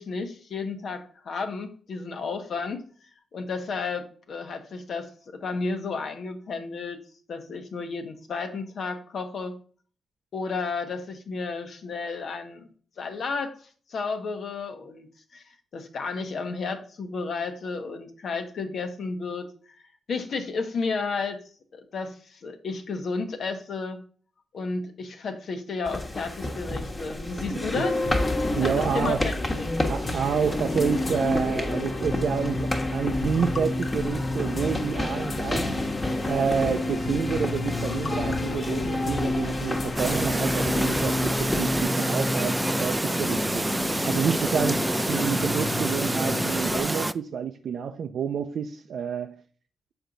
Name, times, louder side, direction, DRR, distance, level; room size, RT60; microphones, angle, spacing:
voice 1, 0.0-2.8 3.3-7.0 7.3-9.6 10.3-12.7 13.0-13.5 13.9-15.1 15.3-15.4 15.7-19.5 20.1-24.0 24.5-28.0 28.6-29.3 29.6-29.7, left 4 dB, 70° left, 1.1 m, -32 dB
sound 1, 25.8-41.8, left 1 dB, 25° left, 1.3 m, -31 dB
sound 2, 27.8-46.8, left 2 dB, 45° left, 1.0 m, -30 dB
voice 2, 28.6-29.3 29.9-35.7 36.3-49.4, right 7 dB, 75° right, 0.5 m, -29 dB
Chirp tweet, 40.0-47.1, right 2 dB, 15° right, 0.3 m, -28 dB
7.2 x 4.5 x 3.8 m
cardioid pair, 70°, 0 cm